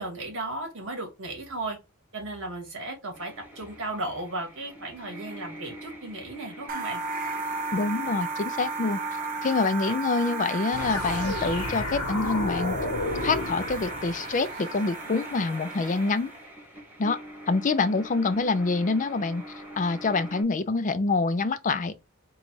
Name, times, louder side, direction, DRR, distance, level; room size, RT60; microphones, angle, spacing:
voice 1, 0.0-1.8 2.1-7.0, right 2 dB, 60° right, 2.1 m, -35 dB
sound 1, 3.1-20.4, right 1 dB, 5° right, 1.4 m, -44 dB
sound 2, 6.7-16.4, right 4 dB, 40° right, 0.5 m, -34 dB
voice 2, 7.7-9.0 9.4-12.8 13.2-16.3 17.0-17.2 17.5-19.4 19.8-21.9, left 3 dB, 35° left, 0.4 m, -26 dB
sound 3, 10.7-14.7, left 2 dB, 90° left, 1.0 m, -32 dB
3.9 x 2.3 x 4.6 m
head